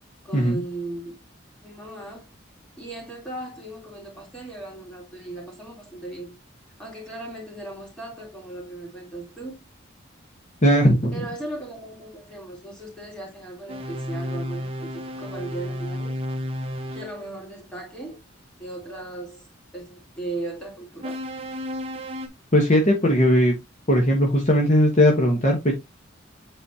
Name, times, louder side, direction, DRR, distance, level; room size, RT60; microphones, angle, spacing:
voice 1, 0.2-1.2 1.6-2.3 2.8-6.4 6.8-9.7 11.1-16.1 16.9-18.2 18.6-19.4 19.7-21.2, right 2 dB, 5° left, 3.3 m, -37 dB
voice 2, 10.6-11.1 22.5-23.5 23.9-25.7, equal, 35° left, 1.3 m, -18 dB
sound 1, 13.7-17.2 21.0-22.3, equal, 30° right, 1.1 m, -32 dB
8.3 x 4.1 x 2.8 m
head